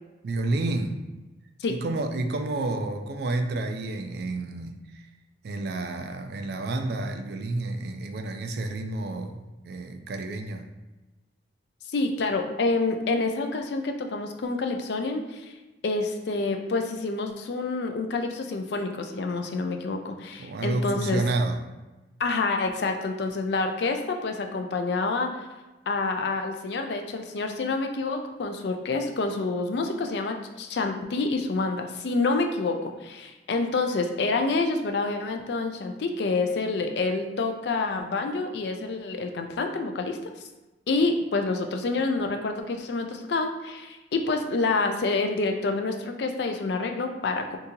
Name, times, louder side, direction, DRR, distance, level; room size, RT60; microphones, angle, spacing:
voice 1, 0.2-1.0 1.7-5.1 5.4-10.7 20.4-21.6, right 2 dB, 60° right, 6 dB, 0.3 m, -30 dB
voice 2, 11.9-15.5 15.8-21.2 22.2-25.4 25.9-40.2 40.9-47.6, left 3 dB, 60° left, 5 dB, 0.4 m, -27 dB
2.8 x 2.7 x 3.6 m, 1.1 s
head